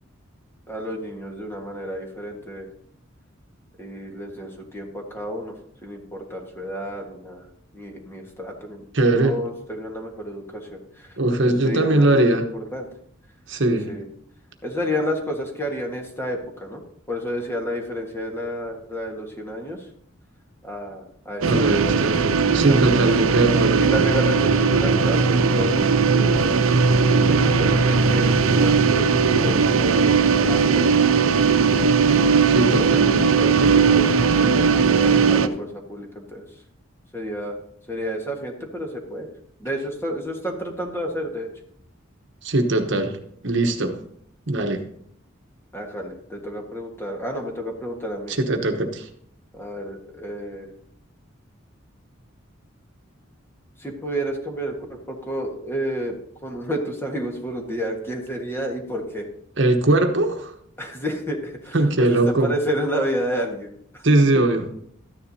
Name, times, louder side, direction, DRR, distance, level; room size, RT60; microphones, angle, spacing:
voice 1, 0.7-2.7 3.8-5.5 5.8-7.5 7.7-11.2 11.4-12.9 13.9-14.1 14.6-19.9 20.6-21.8 23.0-23.1 23.8-26.5 27.3-31.0 33.2-36.5 37.1-37.6 37.9-39.3 39.6-41.5 45.7-48.4 49.5-50.7 53.8-56.1 56.4-59.3 60.8-64.1, equal, 10° left, 1 dB, 1.5 m, -31 dB
voice 2, 8.9-9.4 11.2-12.5 13.5-13.9 21.4-23.9 32.5-33.9 42.4-43.2 43.4-44.0 44.5-44.8 48.3-49.1 59.6-60.5 61.7-62.5 64.0-64.7, right 2 dB, 60° right, 5 dB, 1.1 m, -21 dB
sound 1, 21.4-35.5, right 5 dB, 85° right, 0.7 m, -18 dB
13.0 x 10.0 x 2.8 m, 0.67 s
head